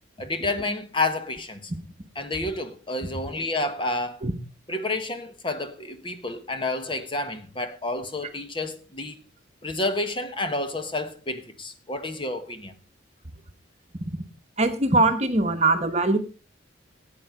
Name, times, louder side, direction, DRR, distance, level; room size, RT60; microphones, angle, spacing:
voice 1, 0.2-1.7 2.1-4.2 4.7-9.2 9.6-12.8, left 2 dB, 25° left, 1.2 m, -30 dB
voice 2, 14.6-16.2, right 2 dB, 35° right, 1.1 m, -21 dB
12.5 x 8.9 x 4.9 m
head